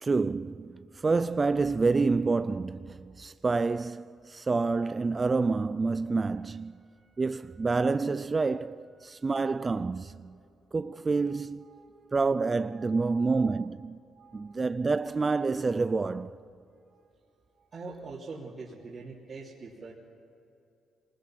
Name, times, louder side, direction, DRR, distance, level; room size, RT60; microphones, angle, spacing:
voice 1, 0.0-6.7 7.2-10.4 10.7-11.7 12.1-14.0 14.3-16.4, right 4 dB, 30° right, 0.4 m, -28 dB
voice 2, 6.7-7.7 9.0-9.3 11.0-13.6 14.1-14.6 16.9-17.0 17.6-19.9, right 4 dB, 45° right, 3.1 m, -47 dB
24.0 x 20.0 x 6.0 m
cardioid pair, 90°, 0 cm